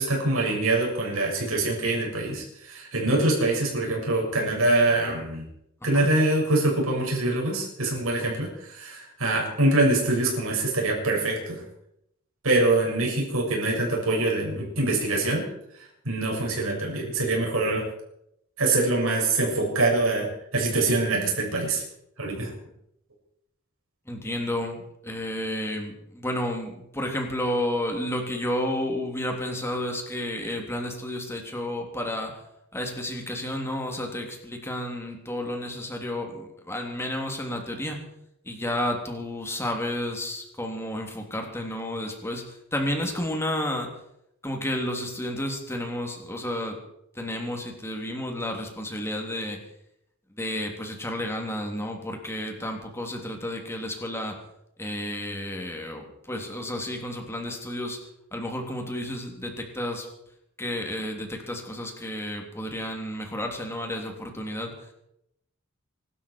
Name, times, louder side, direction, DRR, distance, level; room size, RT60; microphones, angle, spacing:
voice 1, 0.0-5.5 5.8-11.6 12.4-15.4 16.0-17.8 18.6-21.8 22.2-22.5, right 2 dB, 80° right, -1 dB, 6.3 m, -24 dB
voice 2, 24.1-32.3 32.7-38.0 38.4-43.9 44.4-46.8 47.2-49.6 50.3-54.4 54.8-58.0 58.3-60.1 60.6-64.7, left 1 dB, 10° left, 2 dB, 3.3 m, -31 dB
24.5 x 12.5 x 4.7 m, 0.78 s
head